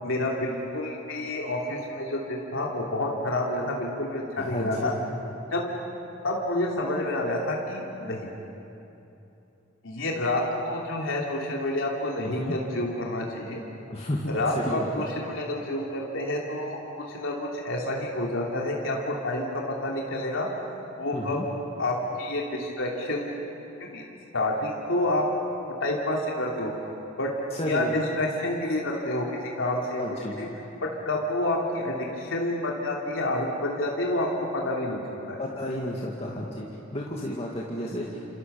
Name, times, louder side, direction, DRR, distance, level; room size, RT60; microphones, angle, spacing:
voice 1, 0.0-4.9 5.5-5.6 6.2-8.3 9.8-13.6 14.3-19.0 19.2-20.5 21.0-21.4 21.8-23.3 23.9-24.0 24.3-25.3 25.8-26.9 27.2-27.3 27.6-30.0 30.4-30.5 30.8-34.3 34.5-35.4, left 1 dB, 80° left, -2 dB, 3.0 m, -29 dB
voice 2, 4.4-5.0 12.4-12.6 13.9-15.1 21.1-21.5 27.5-27.9 30.0-30.3 35.4-36.7 36.9-38.3, left 1 dB, 30° left, -2 dB, 2.2 m, -32 dB
30.0 x 27.5 x 7.0 m, 2.9 s
head